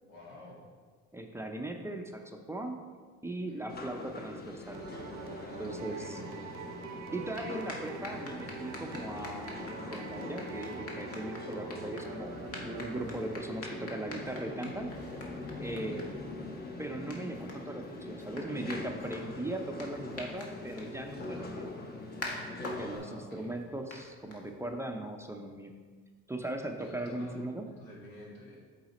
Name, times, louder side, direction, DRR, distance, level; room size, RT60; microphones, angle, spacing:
voice 1, 0.0-0.6 3.5-3.7 5.3-6.2 13.0-13.3 15.5-16.1 21.3-21.6 22.6-23.6 26.8-28.6, left 1 dB, 85° left, -4 dB, 2.1 m, -50 dB
voice 2, 1.1-2.8 3.2-4.8 5.6-6.2 7.1-12.3 12.6-14.9 15.6-16.2 16.8-21.6 22.5-25.7 26.3-27.6, right 1 dB, 10° right, 3 dB, 0.5 m, -39 dB
sound 1, 3.7-23.0, left 2 dB, 35° left, 1.1 m, -43 dB
sound 2, 4.7-13.7, right 5 dB, 75° right, 0.7 m, -45 dB
sound 3, 7.1-24.9, left 2 dB, 50° left, 1.5 m, -47 dB
7.9 x 4.1 x 4.1 m, 1.5 s
cardioid pair, 95°, 29 cm